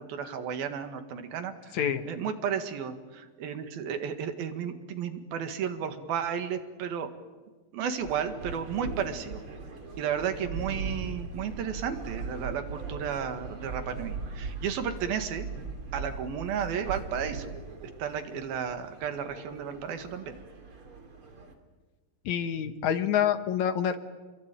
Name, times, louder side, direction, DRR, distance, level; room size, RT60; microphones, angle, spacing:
voice 1, 0.0-7.1 7.7-9.4 10.0-15.5 15.9-17.5 17.8-20.4, right 7 dB, 85° right, 8 dB, 3.7 m, -33 dB
sound 1, 8.0-21.5, right 4 dB, 40° right, 3.5 m, -40 dB
voice 2, 22.3-24.0, left 9 dB, 60° left, 9 dB, 2.4 m, -27 dB
28.5 x 22.5 x 9.2 m, 1.3 s
omnidirectional pair, 4.1 m